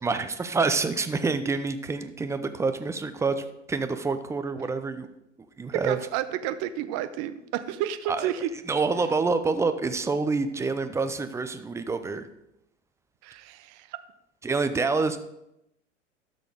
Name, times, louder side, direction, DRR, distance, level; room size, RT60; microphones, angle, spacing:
voice 1, 0.0-5.1 5.6-6.0 8.1-8.3 8.7-12.3 14.4-15.2, right 4 dB, 10° right, 10 dB, 0.5 m, -27 dB
voice 2, 5.7-8.5 13.2-14.0, right 11 dB, 40° right, 12 dB, 0.8 m, -31 dB
12.5 x 6.3 x 3.6 m, 0.83 s
hypercardioid pair, 100°, 37 cm